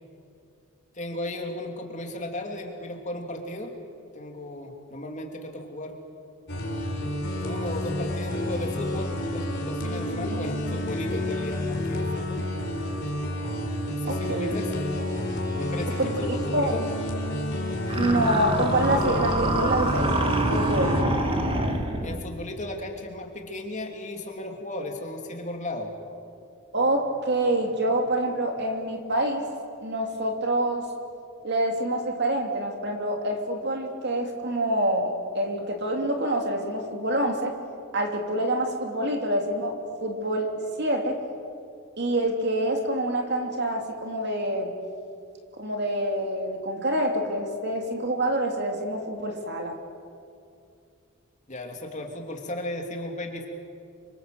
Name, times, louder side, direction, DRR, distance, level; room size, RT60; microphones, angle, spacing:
voice 1, 0.9-3.7 4.1-6.0 7.3-12.4 13.9-14.7 15.5-16.8 22.0-25.9 51.5-53.5, left 1 dB, 35° left, 3 dB, 3.0 m, -35 dB
sound 1, 6.5-21.0, left 1 dB, 55° left, 4.3 m, -29 dB
voice 2, 14.0-14.5 16.0-16.1 16.5-16.8 17.9-21.1 26.7-29.5 29.8-30.9 31.4-37.5 37.9-39.7 40.0-40.5 40.8-41.2 42.0-44.7 45.6-49.8, right 1 dB, 50° right, 3 dB, 3.1 m, -26 dB
sound 2, 17.9-22.2, right 1 dB, 25° right, 2.1 m, -26 dB
28.5 x 25.0 x 7.9 m, 2.4 s
head